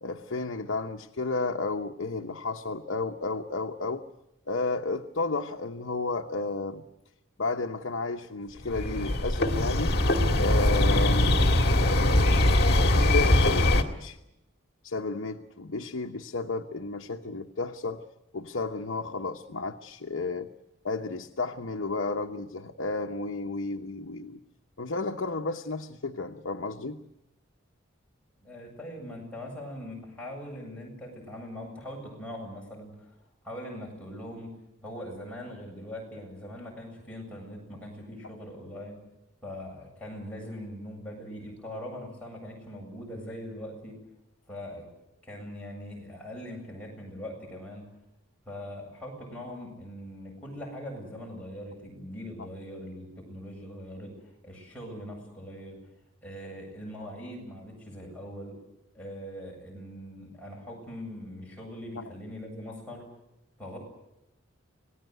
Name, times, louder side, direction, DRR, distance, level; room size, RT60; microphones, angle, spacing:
voice 1, 0.0-4.0 4.5-6.8 7.4-10.0 10.4-12.9 13.1-14.2 14.8-18.0 18.3-20.5 20.8-24.4 24.8-27.0 62.0-62.1, left 3 dB, 70° left, 3 dB, 1.0 m, -32 dB
sound 1, 8.6-13.8, left 1 dB, 50° left, 2.0 m, -22 dB
voice 2, 28.4-33.2 33.4-34.5 34.8-39.0 39.4-44.0 44.5-44.9 45.2-47.9 48.4-55.8 56.2-58.6 58.9-63.1 63.6-63.8, equal, 5° left, -2 dB, 8.0 m, -41 dB
26.5 x 19.0 x 8.0 m, 0.87 s
head